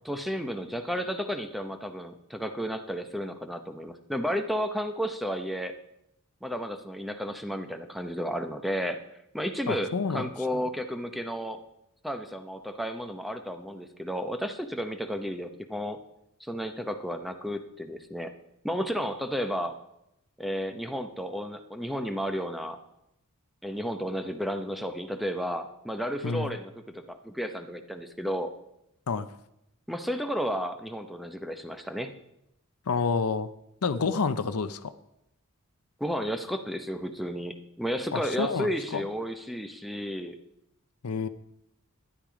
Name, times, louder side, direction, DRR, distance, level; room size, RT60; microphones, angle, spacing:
voice 1, 0.0-5.7 6.4-9.0 9.3-11.6 12.0-16.0 16.4-18.3 18.6-19.8 20.4-22.8 23.6-28.5 29.9-32.1 36.0-40.4, equal, ahead, 7 dB, 0.8 m, -32 dB
voice 2, 9.7-10.3 26.2-26.6 29.1-29.3 32.9-33.5 33.8-34.9 38.1-39.0 41.0-41.3, left 4 dB, 75° left, 12 dB, 0.6 m, -29 dB
12.0 x 10.5 x 5.0 m, 0.82 s
head